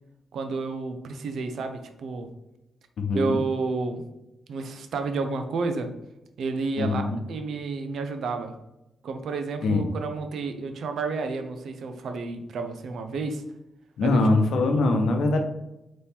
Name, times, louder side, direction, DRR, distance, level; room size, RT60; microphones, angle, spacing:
voice 1, 0.3-2.3 3.1-4.0 4.5-5.9 6.4-8.6 9.0-13.4 14.0-14.2, right 4 dB, 70° right, 7 dB, 0.6 m, -30 dB
voice 2, 3.0-3.4 6.8-7.2 9.6-9.9 14.0-15.4, left 2 dB, 75° left, 5 dB, 0.7 m, -22 dB
4.2 x 3.1 x 3.5 m, 0.90 s
cardioid pair, 120°, 0 cm